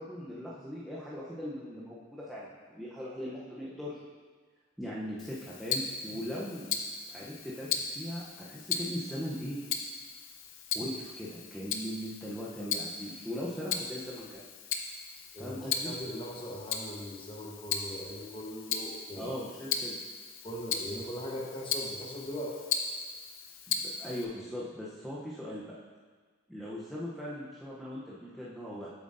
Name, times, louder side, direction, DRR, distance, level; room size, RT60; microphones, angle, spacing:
voice 1, 0.0-4.0 4.8-6.8 7.1-9.6 10.7-14.4 15.4-16.0 19.2-20.0 23.7-25.6 26.5-28.9, equal, ahead, -7 dB, 0.7 m, -39 dB
Tick-tock, 5.2-24.2, left 6 dB, 70° left, 0.6 m, -37 dB
voice 2, 15.3-19.3 20.4-22.5, equal, 25° left, -3 dB, 1.1 m, -40 dB
8.0 x 7.0 x 2.6 m, 1.5 s
head